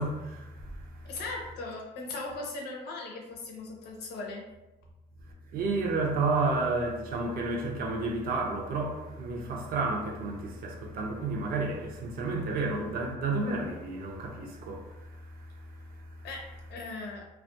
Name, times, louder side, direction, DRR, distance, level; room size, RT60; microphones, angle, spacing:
voice 1, 0.0-1.1 5.5-15.6 16.1-16.2, right 3 dB, 60° right, 0.6 m, -31 dB
voice 2, 1.0-4.5 16.2-17.2, left 3 dB, 80° left, 0.7 m, -38 dB
2.3 x 2.2 x 2.6 m
cardioid pair, 110°, 17 cm